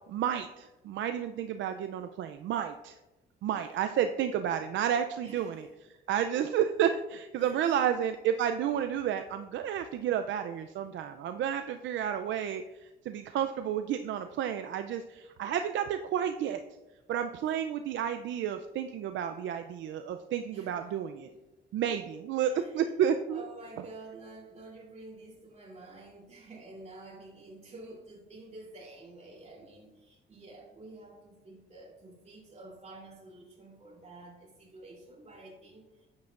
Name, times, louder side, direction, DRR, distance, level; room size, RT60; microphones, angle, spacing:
voice 1, 0.1-3.0 3.4-5.7 6.1-16.6 17.1-21.3 21.7-23.4, right 9 dB, 70° right, 8 dB, 0.4 m, -31 dB
voice 2, 5.2-5.7 7.4-7.9 20.5-21.4 21.9-22.8 23.3-36.1, right 2 dB, 35° right, -2 dB, 3.0 m, -50 dB
10.5 x 7.5 x 2.5 m, 1.0 s
cardioid pair, 90°, 20 cm